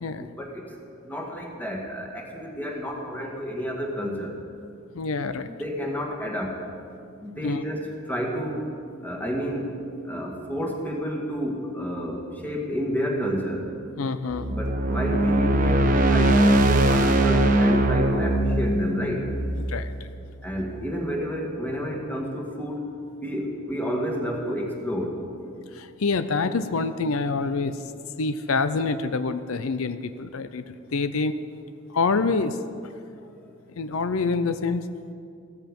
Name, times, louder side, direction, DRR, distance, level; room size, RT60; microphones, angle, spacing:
voice 1, 0.1-4.4 5.5-6.6 7.2-8.7 9.0-9.8 10.0-13.7 14.5-19.3 20.4-22.9 23.2-25.2, equal, 10° left, 0 dB, 1.9 m, -30 dB
voice 2, 5.0-5.5 7.4-7.6 14.0-14.4 19.6-19.9 25.8-27.7 28.2-30.6 30.9-31.3 31.9-32.6 33.8-34.8, left 4 dB, 90° left, 11 dB, 0.6 m, -26 dB
sound 1, 14.3-20.5, right 1 dB, 40° right, 1.0 m, -21 dB
16.0 x 13.5 x 5.4 m, 2.5 s
head